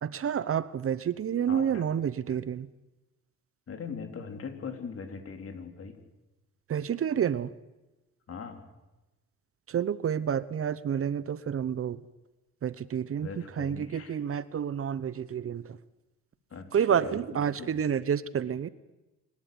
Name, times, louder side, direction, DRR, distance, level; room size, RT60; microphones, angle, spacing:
voice 1, 0.0-2.7 6.7-7.5 9.7-12.0 12.6-15.6 16.7-18.7, right 8 dB, 50° right, 17 dB, 0.9 m, -29 dB
voice 2, 1.5-1.8 3.7-6.0 8.3-8.6 13.2-14.2 16.5-17.8, left 5 dB, 50° left, 5 dB, 3.9 m, -40 dB
26.5 x 12.5 x 9.6 m, 1.1 s
cardioid pair, 90°, 30 cm